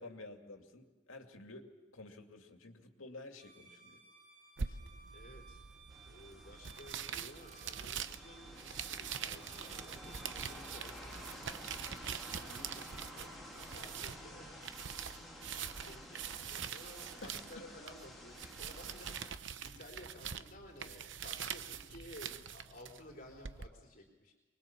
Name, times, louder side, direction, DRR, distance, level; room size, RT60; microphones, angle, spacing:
voice 1, 0.0-1.7 1.9-4.0 4.7-4.8 17.2-17.7, left 2 dB, 85° left, 4 dB, 2.5 m, -51 dB
Bowed string instrument, 3.3-10.8, right 5 dB, 35° right, 6.0 m, -59 dB
sound 1, 4.6-23.7, right 7 dB, 65° right, 0.8 m, -44 dB
voice 2, 5.1-5.6 6.1-11.8 12.4-14.7 15.5-24.3, left 1 dB, 45° left, 0 dB, 3.9 m, -55 dB
sound 2, 5.9-19.3, equal, ahead, 3.4 m, -52 dB
24.0 x 22.0 x 7.2 m, 1.3 s
head